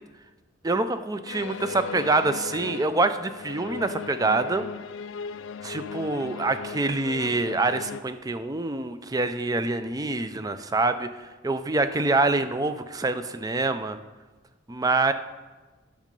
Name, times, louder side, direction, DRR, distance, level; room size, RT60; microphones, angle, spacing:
voice 1, 0.6-4.7 5.6-11.1 11.4-14.0 14.7-15.1, right 3 dB, 20° right, 10 dB, 0.5 m, -25 dB
sound 1, 1.3-8.0, left 6 dB, 65° left, 0.3 m, -37 dB
10.5 x 7.4 x 5.3 m, 1.2 s
head